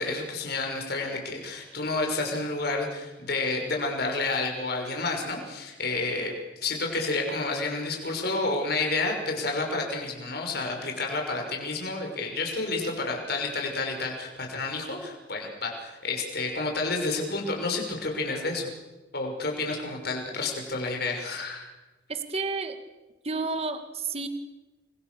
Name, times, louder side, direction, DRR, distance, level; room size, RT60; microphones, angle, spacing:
voice 1, 0.0-6.3 6.6-18.7 19.1-21.7, left 3 dB, 55° left, 2 dB, 6.1 m, -30 dB
voice 2, 22.1-22.8 23.2-24.3, right 4 dB, 35° right, 8 dB, 1.9 m, -31 dB
29.5 x 23.5 x 7.0 m, 1.1 s
head